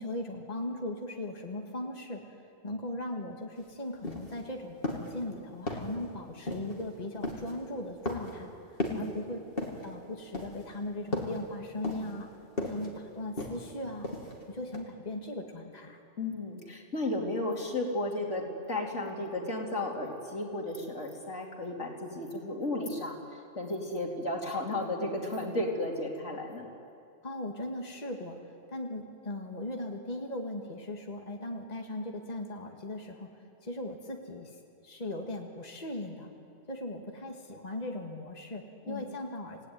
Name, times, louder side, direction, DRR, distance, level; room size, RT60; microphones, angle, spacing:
voice 1, 0.0-2.2 2.6-8.5 8.9-9.4 9.8-12.3 12.6-14.1 14.5-16.0 27.2-28.4 28.7-33.3 33.6-34.5 34.8-36.3 36.7-39.7, left 1 dB, 35° left, 1 dB, 2.1 m, -38 dB
sound 1, 3.6-3.7 4.0-4.4 4.8-5.2 5.7-6.0 6.5-6.8 7.2-7.5 8.0-8.4 8.8-9.1 9.6-9.9 10.3-10.7 11.1-11.4 11.8-12.2 12.6-12.9 13.4-13.7 14.0-14.4 14.7-14.8, left 1 dB, 50° left, 3.1 m, -35 dB
voice 2, 16.2-26.7 38.9-39.1, left 2 dB, 80° left, 0 dB, 3.5 m, -34 dB
28.5 x 17.0 x 9.5 m, 2.5 s
omnidirectional pair, 1.2 m